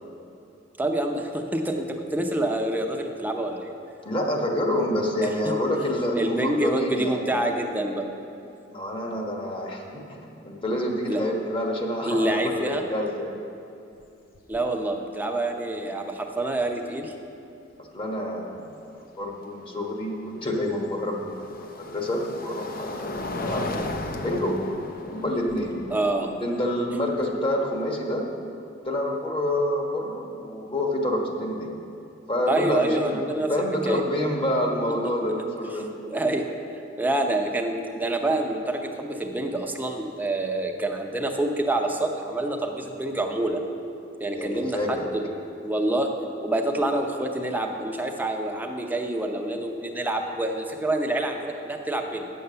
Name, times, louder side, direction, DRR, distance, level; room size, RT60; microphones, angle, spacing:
voice 1, 0.8-3.7 6.2-8.1 11.1-11.2 12.0-12.8 14.5-17.1 25.9-26.3 32.5-33.5 33.9-34.0 36.1-36.4 37.0-43.6 44.2-45.2 45.5-46.1 46.4-52.3, right 1 dB, 10° right, 2 dB, 0.7 m, -27 dB
voice 2, 4.0-7.2 8.7-10.2 10.4-13.3 17.9-18.7 19.2-23.9 24.2-25.8 26.4-28.3 28.8-31.7 32.3-33.2 33.5-35.9 44.3-45.1, left 1 dB, 30° left, 0 dB, 1.3 m, -28 dB
sound 1, 13.9-14.0 14.3-14.8 16.6-16.7 19.7-27.8, left 2 dB, 50° left, 0.7 m, -36 dB
9.3 x 6.8 x 6.7 m, 2.7 s
head